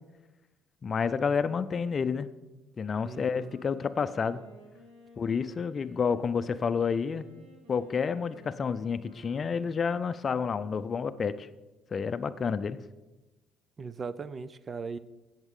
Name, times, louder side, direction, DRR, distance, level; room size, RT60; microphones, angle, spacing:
voice 1, 0.8-2.3 2.8-4.4 5.2-7.2 7.7-11.5 11.9-12.8, left 6 dB, 40° left, 13 dB, 0.5 m, -29 dB
Wind instrument woodwind instrument, 2.6-10.6, right 1 dB, 85° right, 3.2 m, -56 dB
voice 2, 3.0-3.5 13.8-15.0, right 5 dB, 35° right, 16 dB, 0.5 m, -38 dB
16.0 x 7.2 x 3.8 m, 1.1 s
supercardioid pair, 85°, 0 cm